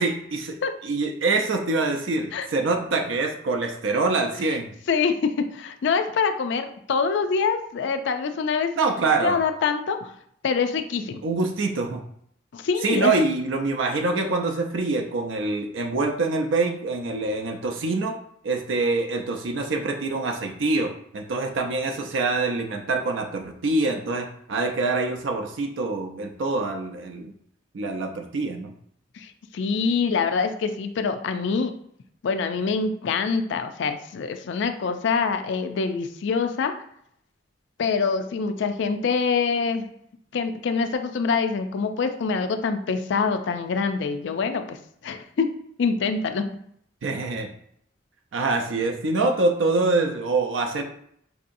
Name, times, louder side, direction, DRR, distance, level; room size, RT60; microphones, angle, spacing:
voice 1, 0.0-4.7 8.8-9.4 11.2-12.0 12.8-18.2 18.4-27.3 27.7-28.7 47.0-47.5 48.3-50.8, right 3 dB, 75° right, 3 dB, 0.5 m, -25 dB
voice 2, 4.9-8.7 9.2-10.1 10.4-11.2 12.5-13.1 29.1-31.7 32.2-36.7 37.8-39.9 40.3-44.8 45.0-46.5, left 5 dB, 65° left, 8 dB, 0.4 m, -25 dB
4.6 x 2.7 x 2.5 m, 0.69 s
head